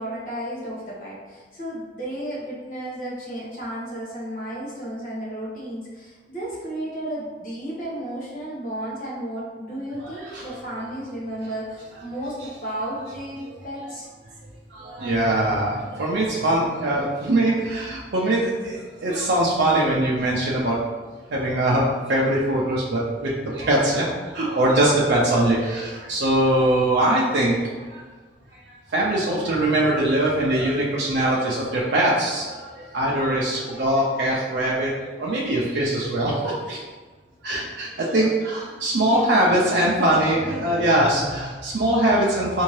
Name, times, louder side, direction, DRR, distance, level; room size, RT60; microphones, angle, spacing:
voice 1, 0.0-14.1 39.1-40.8, right 1 dB, 50° left, -6 dB, 1.1 m, -33 dB
voice 2, 10.0-10.6 14.7-20.8 21.3-28.0 28.5-28.6 28.9-36.8 37.4-42.6, right 1 dB, 80° right, -5 dB, 0.5 m, -22 dB
3.5 x 2.7 x 3.1 m, 1.4 s
head